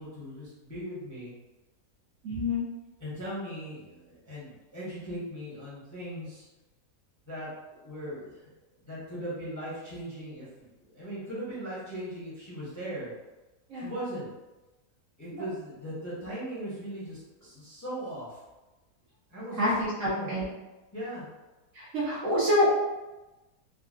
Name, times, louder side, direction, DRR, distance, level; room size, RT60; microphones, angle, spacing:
voice 1, 0.0-1.3 3.0-6.5 7.3-8.5 8.8-13.1 13.7-14.3 15.2-18.4 19.3-20.4 20.9-21.3, equal, 15° left, -9 dB, 0.8 m, -39 dB
voice 2, 2.2-2.6 13.7-13.9 15.3-15.4 19.6-20.4 21.7-22.7, left 1 dB, 60° right, -8 dB, 0.9 m, -26 dB
3.7 x 2.2 x 2.4 m, 1.1 s
omnidirectional pair, 1.7 m